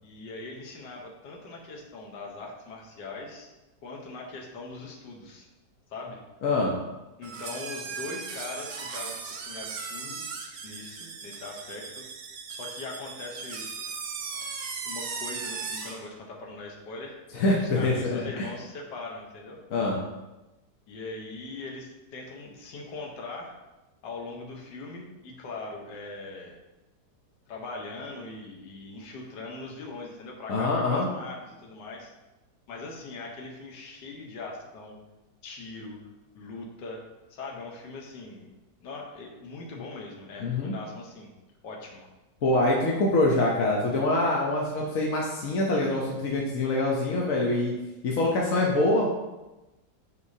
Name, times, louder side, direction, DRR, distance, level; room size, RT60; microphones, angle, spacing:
voice 1, 0.0-3.5 3.8-5.5 5.9-6.2 7.2-12.1 12.5-13.7 14.8-17.1 17.6-19.6 20.9-23.5 24.0-26.6 27.5-32.1 32.7-35.0 35.4-36.0 36.3-37.0 37.3-38.5 38.8-41.3 41.6-42.1, left 3 dB, 80° left, -1 dB, 1.6 m, -41 dB
voice 2, 6.4-6.7 17.3-18.4 19.7-20.0 30.5-31.1 40.4-40.7 42.4-47.7 48.0-49.1, left 2 dB, 55° left, -2 dB, 1.1 m, -25 dB
sound 1, 7.2-16.1, right 5 dB, 80° right, 1.4 m, -37 dB
8.1 x 4.9 x 2.7 m, 1.0 s
omnidirectional pair, 1.8 m